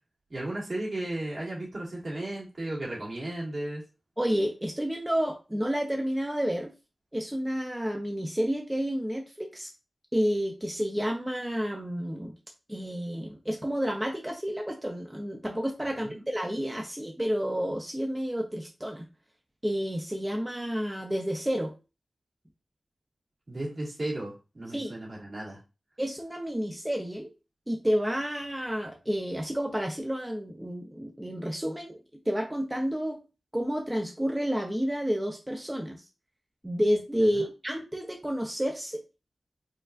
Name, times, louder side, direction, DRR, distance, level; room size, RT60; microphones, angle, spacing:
voice 1, 0.3-3.8 16.0-16.2 23.5-25.6, right 1 dB, 60° right, -5 dB, 1.9 m, -35 dB
voice 2, 4.2-6.7 7.1-9.7 10.1-12.3 12.7-19.1 19.6-21.7 24.7-24.9 26.0-27.3 27.7-32.0 32.3-33.2 33.5-36.0 36.6-39.0, equal, 15° right, 2 dB, 0.6 m, -30 dB
4.5 x 2.4 x 2.5 m, 0.30 s
cardioid pair, 45°, 0 cm